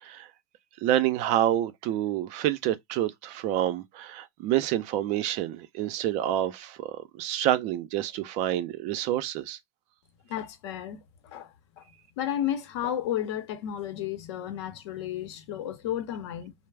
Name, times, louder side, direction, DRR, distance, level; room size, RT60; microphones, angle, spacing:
voice 1, 0.8-9.6, right 12 dB, 55° right, 0.5 m, -28 dB
voice 2, 10.3-11.0 11.2-11.8 12.2-16.5, left 10 dB, 70° left, 0.7 m, -32 dB
2.2 x 2.0 x 3.3 m
hypercardioid pair, 100°, 15 cm